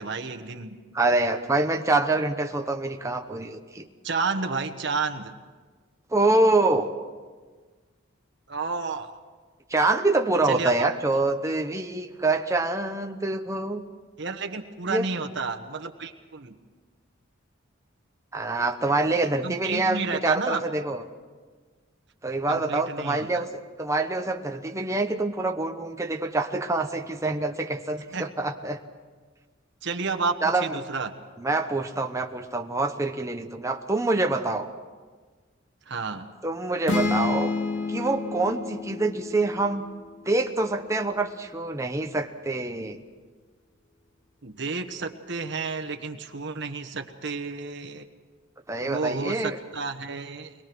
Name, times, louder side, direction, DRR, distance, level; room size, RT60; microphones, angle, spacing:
voice 1, 0.0-0.8 4.0-5.3 8.5-9.2 10.4-10.9 14.2-16.6 19.2-20.6 22.5-23.5 28.1-28.3 29.8-31.1 35.9-36.3 44.4-48.1 48.8-50.5, right 4 dB, 60° right, 6 dB, 1.3 m, -31 dB
voice 2, 0.9-3.9 6.1-6.9 9.7-13.8 14.9-15.1 18.3-21.0 22.2-23.5 23.8-28.8 30.4-30.7 31.4-34.7 36.4-37.5 37.9-39.9 40.3-43.0 48.7-49.6, right 2 dB, 15° right, 4 dB, 1.0 m, -26 dB
sound 1, 36.9-40.6, left 3 dB, 65° left, 3.0 m, -30 dB
23.5 x 21.5 x 6.2 m, 1.4 s
head